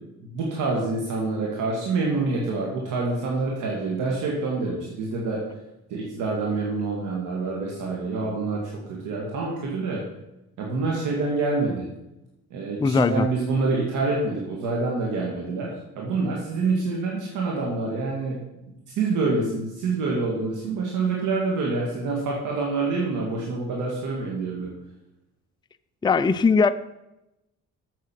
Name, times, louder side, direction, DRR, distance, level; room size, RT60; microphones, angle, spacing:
voice 1, 0.2-5.6 5.9-8.6 8.9-10.1 10.6-11.9 12.5-18.4 19.0-24.7, right 3 dB, 85° right, -2 dB, 2.2 m, -26 dB
voice 2, 12.8-13.3 26.0-26.7, left 5 dB, 15° left, 11 dB, 0.4 m, -19 dB
7.8 x 7.4 x 7.6 m, 0.92 s
cardioid pair, 90°, 30 cm